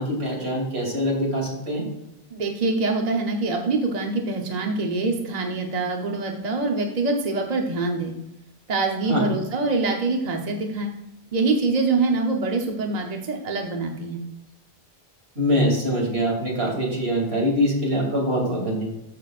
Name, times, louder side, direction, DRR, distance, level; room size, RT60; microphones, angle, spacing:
voice 1, 0.0-1.8 9.1-9.2 15.3-18.9, equal, 85° right, -1 dB, 3.0 m, -23 dB
voice 2, 2.3-8.1 8.7-10.9 11.3-14.2, right 3 dB, 40° right, 2 dB, 1.0 m, -24 dB
13.5 x 6.0 x 2.5 m, 0.91 s
omnidirectional pair, 1.1 m